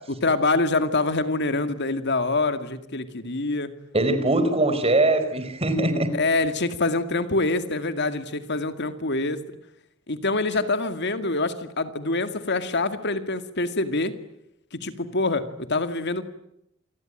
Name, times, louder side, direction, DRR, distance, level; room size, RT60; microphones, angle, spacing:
voice 1, 0.1-3.7 6.1-9.4 10.1-14.1 14.7-16.2, left 2 dB, 55° left, 10 dB, 2.2 m, -25 dB
voice 2, 3.9-6.1, right 2 dB, 30° right, 10 dB, 4.5 m, -21 dB
28.5 x 21.0 x 9.2 m, 0.79 s
head